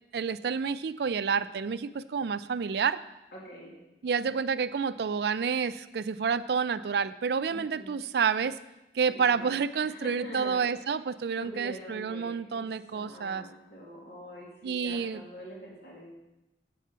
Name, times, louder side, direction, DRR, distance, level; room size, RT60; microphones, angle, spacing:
voice 1, 0.1-3.0 4.0-8.6 8.9-13.4 14.6-15.2, right 6 dB, 65° right, 14 dB, 0.4 m, -29 dB
voice 2, 3.3-3.7 7.5-7.9 9.1-9.6 9.8-10.7 11.4-12.7 12.9-16.1, equal, 70° left, -4 dB, 2.3 m, -44 dB
8.3 x 7.3 x 5.6 m, 0.97 s
head